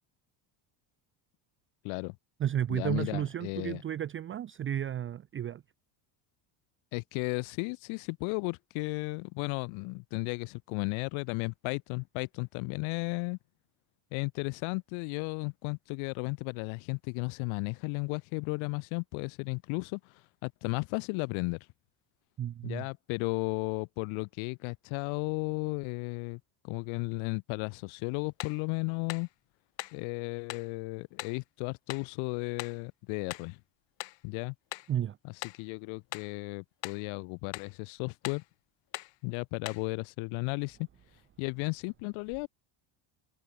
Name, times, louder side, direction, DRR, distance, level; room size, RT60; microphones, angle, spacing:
voice 1, 1.8-2.2 2.7-3.8 6.9-13.4 14.1-20.1 20.4-21.7 22.6-29.3 29.9-33.6 34.2-34.5 35.2-35.3 35.6-38.4 39.2-40.9 41.4-42.5, left 32 dB, 90° left, 2.2 m, -34 dB
voice 2, 2.4-5.6 22.4-22.9 34.9-35.2, right 10 dB, 25° right, 0.5 m, -32 dB
sound 1, 28.4-28.6 29.1-29.3 29.8-30.0 30.5-30.7 31.2-31.4 31.9-32.1 32.6-32.8 33.3-33.5 34.0-34.2 34.7-34.9 35.4-35.7 36.1-36.3 36.8-37.1 37.5-37.7 38.2-38.5 38.9-39.2 39.7-39.9, left 19 dB, 65° left, 1.9 m, -41 dB
open air
cardioid pair, 125°, 47 cm